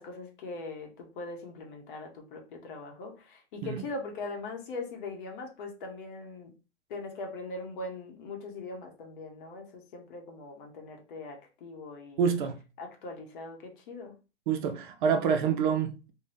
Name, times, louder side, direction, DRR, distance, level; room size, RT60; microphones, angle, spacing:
voice 1, 0.0-6.5 6.9-12.3 12.8-14.1, left 3 dB, 45° left, 0.9 m, -41 dB
voice 2, 12.2-12.6 14.5-16.1, right 6 dB, 45° right, 0.5 m, -27 dB
2.6 x 2.2 x 3.3 m
figure-of-eight pair, 115°, 36 cm